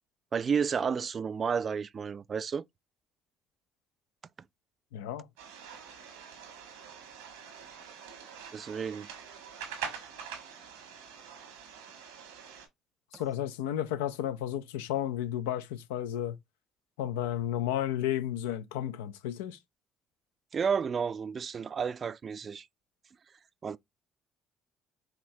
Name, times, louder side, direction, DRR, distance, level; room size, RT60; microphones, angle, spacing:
voice 1, 0.3-2.6 8.5-9.1 13.1-13.2 20.5-22.7 23.6-23.8, right 6 dB, 45° right, 0.3 m, -31 dB
voice 2, 4.9-5.3 13.1-16.4 17.0-19.6, left 11 dB, 85° left, 0.4 m, -32 dB
sound 1, 5.4-12.7, right 7 dB, 85° right, 1.3 m, -45 dB
5.0 x 2.9 x 2.7 m
hypercardioid pair, 60°, 0 cm